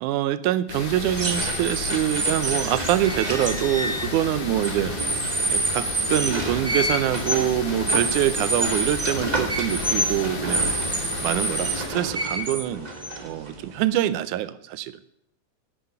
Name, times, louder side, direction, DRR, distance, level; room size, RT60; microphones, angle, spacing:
voice 1, 0.0-4.9 5.5-10.7 11.2-12.9 13.2-15.0, right 12 dB, 85° right, 15 dB, 2.1 m, -25 dB
sound 1, 0.7-11.9, left 4 dB, 75° left, 3.5 m, -33 dB
sound 2, 1.1-13.8, right 1 dB, 65° right, 0.4 m, -27 dB
voice 2, 12.6-13.4, right 2 dB, 40° right, -6 dB, 3.8 m, -46 dB
11.5 x 8.0 x 8.6 m, 0.73 s
omnidirectional pair, 3.5 m